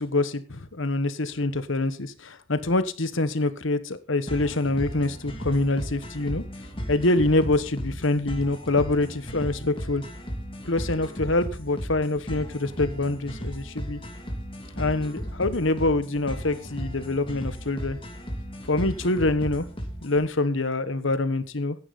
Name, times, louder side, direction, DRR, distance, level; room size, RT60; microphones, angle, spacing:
voice 1, 0.0-6.4 6.9-10.0 10.6-14.0 14.8-18.0 18.7-19.7 20.0-21.8, left 2 dB, 65° left, 12 dB, 1.3 m, -25 dB
sound 1, 4.3-20.2, equal, 25° left, 2.7 m, -35 dB
14.5 x 10.0 x 4.1 m, 0.33 s
head